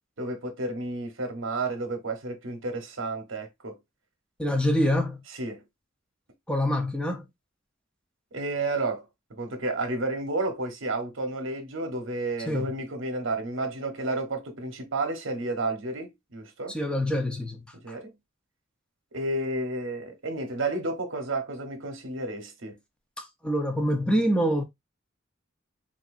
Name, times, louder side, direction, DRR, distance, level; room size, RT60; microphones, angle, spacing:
voice 1, 0.2-3.8 5.4-5.6 8.3-16.8 17.8-18.1 19.1-22.8, right 2 dB, 70° right, 1.0 m, -31 dB
voice 2, 4.4-5.2 6.5-7.2 12.5-12.8 16.7-17.9 23.2-24.6, equal, 5° left, 0.7 m, -26 dB
3.8 x 2.7 x 2.5 m
head